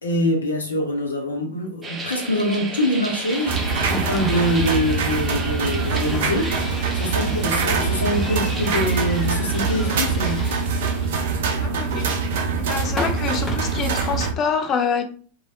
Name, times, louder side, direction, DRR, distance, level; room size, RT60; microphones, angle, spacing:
voice 1, 0.0-3.6 3.9-6.5 6.9-10.5, left 1 dB, 75° left, 0.8 m, -24 dB
sound 1, 1.8-10.2, right 3 dB, 15° right, 0.6 m, -34 dB
sound 2, 3.3-13.6, left 2 dB, 15° left, 0.9 m, -35 dB
sound 3, 3.5-14.3, right 5 dB, 55° right, 0.5 m, -24 dB
voice 2, 11.6-12.2 12.6-15.0, left 6 dB, 30° left, 0.5 m, -26 dB
3.2 x 2.3 x 2.7 m
figure-of-eight pair, 90°, 0 cm